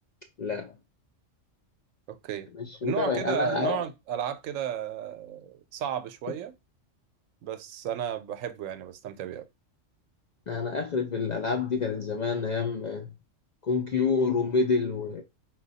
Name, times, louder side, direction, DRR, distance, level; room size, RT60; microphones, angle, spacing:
voice 1, 0.4-0.7 2.6-3.8 10.5-13.1 13.6-15.2, left 4 dB, 65° left, 0.4 m, -28 dB
voice 2, 2.1-2.5 2.8-6.5 7.4-9.5, right 9 dB, 90° right, 1.0 m, -33 dB
4.6 x 2.2 x 4.0 m
omnidirectional pair, 1.3 m